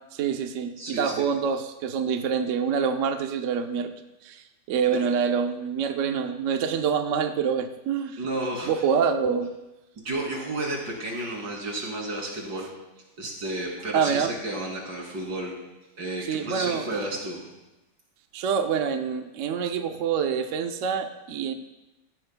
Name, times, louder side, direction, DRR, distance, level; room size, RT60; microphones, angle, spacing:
voice 1, 0.1-3.9 4.2-8.2 8.7-9.5 13.9-14.3 16.3-16.9 18.3-21.5, right 6 dB, 55° right, 6 dB, 0.9 m, -26 dB
voice 2, 0.8-1.1 4.9-5.0 8.2-8.7 10.0-12.7 13.2-15.5 16.0-17.5, right 1 dB, 75° right, -1 dB, 3.5 m, -32 dB
17.0 x 15.0 x 2.3 m, 1.0 s
omnidirectional pair, 2.0 m